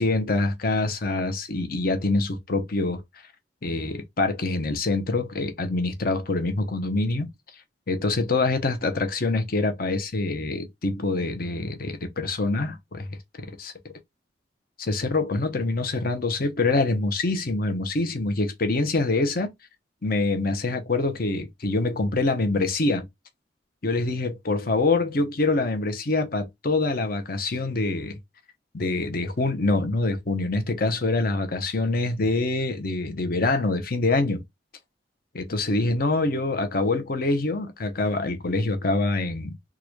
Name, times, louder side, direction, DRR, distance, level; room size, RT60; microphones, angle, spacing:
voice 1, 0.0-3.0 3.6-7.3 7.9-13.9 14.8-19.5 20.0-23.1 23.8-28.2 28.7-34.4 35.3-39.5, left 2 dB, 55° left, 0.9 m, -25 dB
3.8 x 2.4 x 3.0 m
head